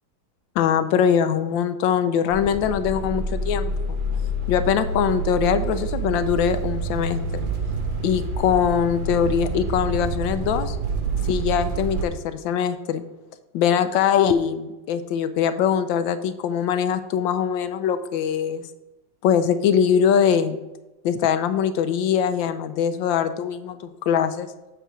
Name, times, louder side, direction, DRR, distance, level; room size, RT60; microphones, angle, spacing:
voice 1, 0.6-4.0 4.5-7.5 8.0-10.8 11.2-13.0 13.5-18.7 19.2-20.6 21.0-24.5, left 8 dB, 85° left, 10 dB, 1.3 m, -22 dB
sound 1, 2.3-12.0, right 3 dB, 70° right, 0.4 m, -27 dB
8.0 x 3.4 x 6.1 m, 1.0 s
omnidirectional pair, 2.0 m